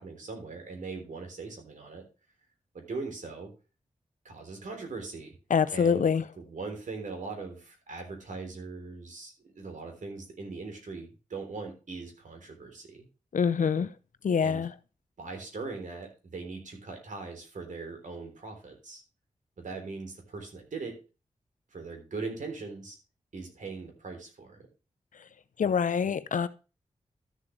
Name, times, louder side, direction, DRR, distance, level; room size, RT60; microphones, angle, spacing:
voice 1, 0.0-2.1 2.7-3.5 4.3-5.4 5.7-6.1 6.4-13.1 14.4-14.7 15.2-19.0 19.6-21.0 21.7-23.0 23.3-24.7, right 4 dB, 80° right, 3.5 m, -40 dB
voice 2, 5.5-6.2 13.3-13.9 14.2-14.7 25.6-26.5, left 6 dB, 80° left, 0.8 m, -25 dB
13.0 x 7.1 x 3.3 m
wide cardioid pair, 75°, 13 cm